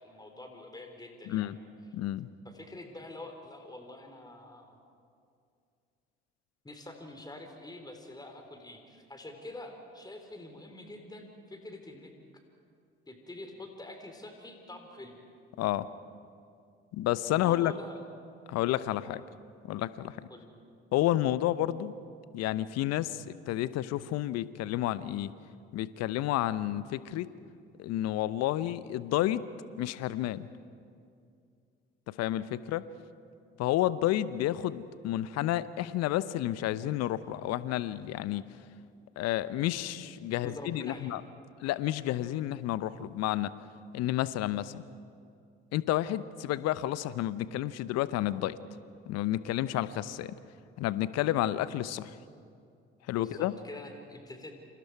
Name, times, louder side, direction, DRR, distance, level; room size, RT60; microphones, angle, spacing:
voice 1, 0.0-1.5 2.4-4.8 6.6-12.1 13.1-15.2 17.3-18.0 20.3-20.5 40.4-41.2 53.1-54.5, left 2 dB, 15° left, 4 dB, 3.7 m, -46 dB
voice 2, 1.3-1.6 1.9-2.3 15.6-15.9 16.9-17.7 18.5-19.2 19.7-20.2 20.9-21.9 22.3-25.3 25.7-27.3 27.8-29.4 29.8-30.5 32.1-32.8 33.6-38.4 39.2-41.2 41.6-43.5 43.9-44.8 45.7-48.6 49.1-50.3 50.8-52.2 53.1-53.5, left 14 dB, 60° left, 16 dB, 0.9 m, -30 dB
29.0 x 27.0 x 4.8 m, 2.4 s
hypercardioid pair, 55°, 30 cm